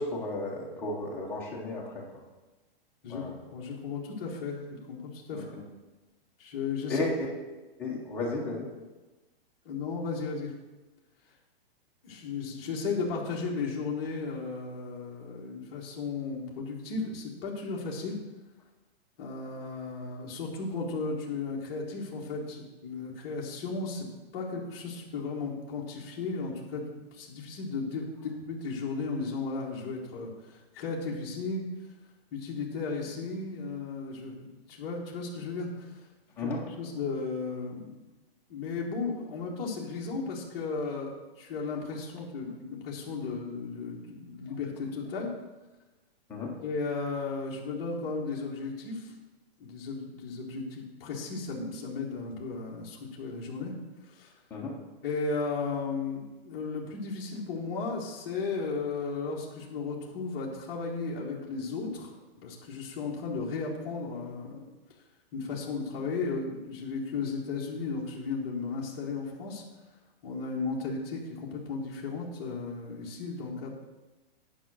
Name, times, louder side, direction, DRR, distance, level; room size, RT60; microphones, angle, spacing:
voice 1, 0.0-2.1 3.1-3.3 5.3-5.6 6.9-7.3 7.8-8.7 36.4-36.6 46.3-46.5 54.5-54.8, left 2 dB, 5° left, -4 dB, 0.9 m, -33 dB
voice 2, 3.5-5.5 6.4-7.0 9.6-10.5 12.0-18.1 19.2-24.1 24.3-26.8 27.1-31.6 32.3-36.0 36.4-36.5 36.8-38.0 38.5-45.3 46.6-49.1 49.6-53.7 54.0-54.3 55.0-64.6 65.3-69.6 70.2-73.7, left 4 dB, 25° left, -4 dB, 1.4 m, -35 dB
9.4 x 5.1 x 6.2 m, 1.1 s
hypercardioid pair, 170°, 31 cm